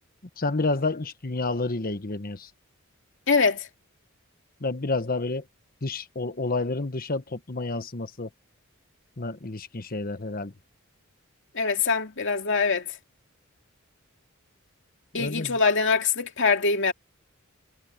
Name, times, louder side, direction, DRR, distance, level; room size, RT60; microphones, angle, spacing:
voice 1, 0.4-2.5 4.6-5.4 5.8-8.3 9.2-10.5 15.2-15.6, left 3 dB, 45° left, 1.3 m, -29 dB
voice 2, 3.3-3.7 11.5-12.8 15.1-16.9, left 4 dB, 65° left, 2.5 m, -23 dB
head